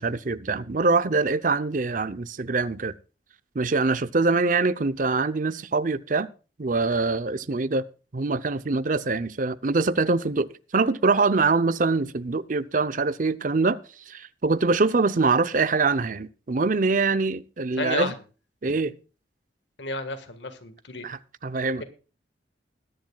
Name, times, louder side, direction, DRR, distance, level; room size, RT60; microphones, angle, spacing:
voice 1, 0.0-2.9 3.5-6.3 6.6-7.8 8.1-13.8 14.1-18.1 18.6-18.9 21.0-21.8, right 3 dB, 50° right, 0.6 m, -24 dB
voice 2, 17.8-18.1 19.8-21.1, left 3 dB, 85° left, 1.6 m, -31 dB
21.0 x 10.5 x 2.3 m
head